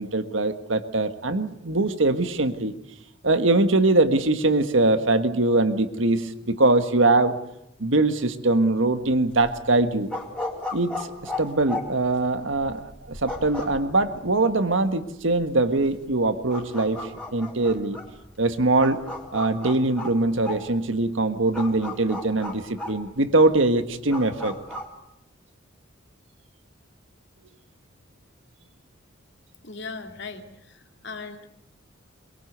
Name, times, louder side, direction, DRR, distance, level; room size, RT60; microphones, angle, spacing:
voice 1, 0.0-2.7 3.2-7.3 7.8-10.1 10.7-18.0 18.4-19.0 19.3-24.5, right 2 dB, 75° right, 9 dB, 1.6 m, -22 dB
sound 1, 9.0-24.9, left 2 dB, 5° left, 3.9 m, -36 dB
voice 2, 29.6-31.5, left 4 dB, 60° left, 5 dB, 2.5 m, -38 dB
22.5 x 22.0 x 8.1 m, 0.80 s
head